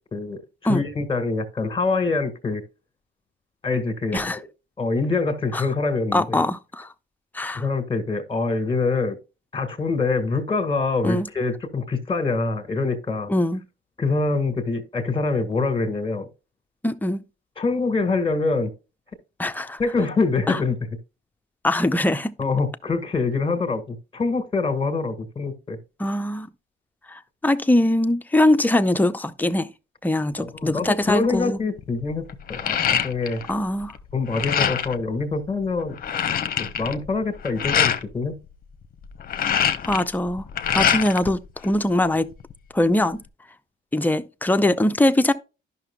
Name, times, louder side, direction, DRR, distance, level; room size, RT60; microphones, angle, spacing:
voice 1, 0.1-0.4 0.7-2.6 3.6-4.4 4.8-6.4 7.5-9.2 9.5-13.3 14.0-16.3 17.6-18.7 19.8-20.8 22.4-25.8 30.4-32.2 32.5-33.4 34.1-36.2 36.6-38.3, left 3 dB, 25° left, 1.6 m, -25 dB
voice 2, 6.1-6.9 7.3-7.7 11.0-11.3 13.3-13.6 16.8-17.2 19.4-19.8 20.5-20.6 21.6-22.3 26.0-26.5 27.1-29.7 30.0-31.6 33.5-33.9 39.8-40.4 40.7-42.3 42.7-43.2 43.9-45.3, left 1 dB, 10° left, 0.6 m, -22 dB
sound 1, 31.1-31.4 31.8-33.5 33.8-35.0 35.5-35.6 35.8-38.0 39.0-41.3 41.6-42.5, left 8 dB, 45° left, 0.7 m, -24 dB
11.0 x 5.9 x 2.2 m
cardioid pair, 90°, 20 cm